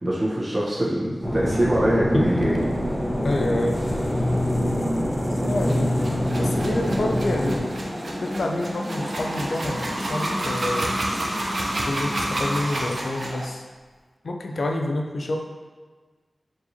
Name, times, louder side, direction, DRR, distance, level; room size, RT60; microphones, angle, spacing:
voice 1, 0.0-2.6, right 1 dB, 40° right, -7 dB, 1.2 m, -23 dB
sound 1, 1.2-7.6, equal, 5° right, 0.8 m, -25 dB
sound 2, 2.4-13.5, left 1 dB, 20° left, 0.4 m, -34 dB
voice 2, 3.2-3.8 5.3-5.9 6.4-7.7 8.2-11.0 11.8-13.6 14.2-15.4, left 1 dB, 80° left, 2 dB, 0.4 m, -28 dB
sound 3, 5.6-13.5, right 1 dB, 70° right, 0.6 m, -30 dB
4.5 x 2.9 x 2.7 m, 1.4 s
cardioid pair, 50°, 0 cm